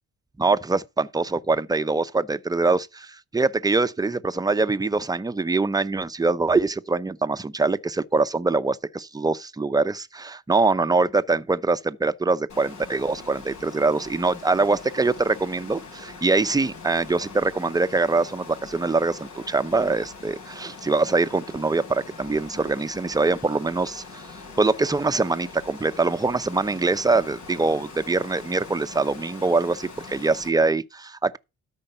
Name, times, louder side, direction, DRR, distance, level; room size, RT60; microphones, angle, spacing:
voice 1, 0.4-24.2 24.6-31.4, right 3 dB, 15° right, 0.7 m, -23 dB
Water, 12.5-30.5, left 4 dB, 75° left, 5.0 m, -42 dB
13.0 x 5.3 x 5.6 m
cardioid pair, 90°, 30 cm